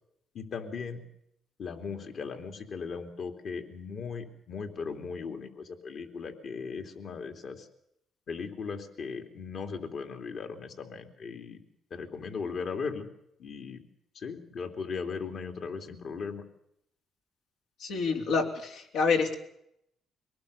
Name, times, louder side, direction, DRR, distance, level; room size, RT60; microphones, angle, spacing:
voice 1, 0.3-1.0 1.6-7.7 8.3-11.6 11.9-13.1 13.4-13.8 14.1-16.4, left 5 dB, 60° left, 5 dB, 3.1 m, -38 dB
voice 2, 17.8-19.3, left 4 dB, 85° left, 2 dB, 3.8 m, -27 dB
24.0 x 19.0 x 7.0 m, 0.76 s
cardioid pair, 90°, 0 cm